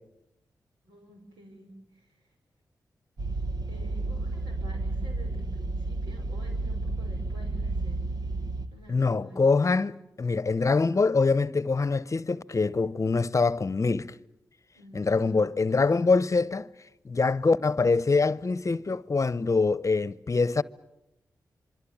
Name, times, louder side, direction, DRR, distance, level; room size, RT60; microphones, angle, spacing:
voice 1, 0.8-2.1 3.7-8.1 8.7-9.6 14.7-15.5, right 1 dB, 90° right, 6.6 m, -49 dB
sound 1, 3.2-8.7, right 2 dB, 65° right, 1.9 m, -31 dB
voice 2, 8.9-14.1 14.9-16.7 17.0-20.6, left 4 dB, 45° left, 0.9 m, -24 dB
27.0 x 24.0 x 8.8 m
supercardioid pair, 40°, 8 cm